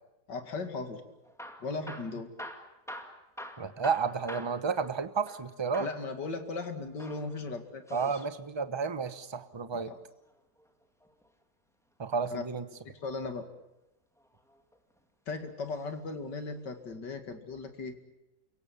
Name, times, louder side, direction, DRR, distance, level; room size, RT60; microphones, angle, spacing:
voice 1, 0.3-1.1 1.6-2.3 5.8-8.2 9.7-10.0 12.3-12.4 12.8-13.5 15.3-18.0, left 3 dB, 75° left, 7 dB, 2.9 m, -37 dB
Hammer / Drill, 1.2-5.5 5.7-6.1 6.9-8.3 10.0-11.3 13.0-13.4 14.2-15.0 15.7-15.9 16.2-16.3 16.9-17.0, equal, ahead, 2.1 m, -46 dB
voice 2, 3.6-5.9 7.9-9.9 12.0-12.6, right 5 dB, 20° right, 12 dB, 0.9 m, -31 dB
29.5 x 17.0 x 8.6 m, 0.95 s
omnidirectional pair, 1.9 m